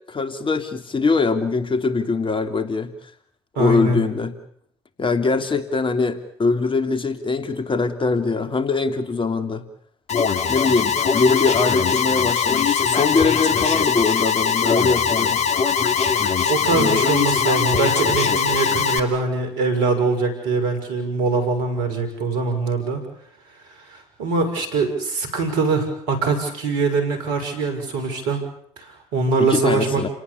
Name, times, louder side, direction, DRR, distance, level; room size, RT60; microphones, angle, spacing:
voice 1, 0.1-2.9 3.6-4.3 5.0-9.6 10.5-15.4 16.7-17.1 29.4-30.1, left 4 dB, 35° left, 9 dB, 3.2 m, -22 dB
voice 2, 3.6-4.0 16.5-23.0 23.8-28.4 28.8-30.1, right 3 dB, 75° right, 7 dB, 6.1 m, -23 dB
Alarm, 10.1-19.0, left 6 dB, 50° left, 3.0 m, -21 dB
30.0 x 18.5 x 8.6 m, 0.68 s
hypercardioid pair, 50°, 15 cm